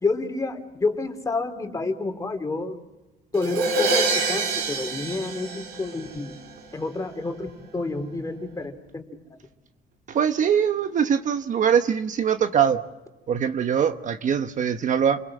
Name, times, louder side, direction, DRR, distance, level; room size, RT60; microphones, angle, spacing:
voice 1, 0.0-2.8 3.3-6.4 6.7-7.5 7.7-9.0, left 3 dB, 20° left, 7 dB, 3.2 m, -29 dB
Crash cymbal, 3.3-6.3, right 3 dB, 80° right, 4.8 m, -26 dB
voice 2, 10.1-12.8 13.3-15.2, right 8 dB, 50° right, 8 dB, 1.2 m, -22 dB
29.5 x 22.0 x 7.6 m, 1.1 s
cardioid pair, 110°, 17 cm